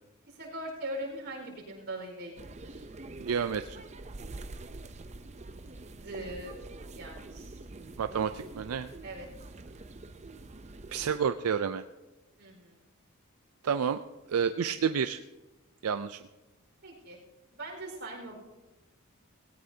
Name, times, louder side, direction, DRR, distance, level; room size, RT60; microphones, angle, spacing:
voice 1, 0.3-2.3 2.6-2.8 5.9-6.5 6.9-7.6 9.0-9.3 9.8-9.9 12.4-12.8 16.8-17.2 17.5-18.4, right 1 dB, 55° right, -1 dB, 4.8 m, -41 dB
sound 1, 2.4-11.2, right 2 dB, 30° right, 0.6 m, -45 dB
voice 2, 3.2-3.8 8.0-8.9 10.9-11.8 13.6-14.0 14.3-15.2 15.8-16.2, right 7 dB, 85° right, 10 dB, 0.4 m, -29 dB
18.5 x 17.0 x 2.8 m, 1.1 s
head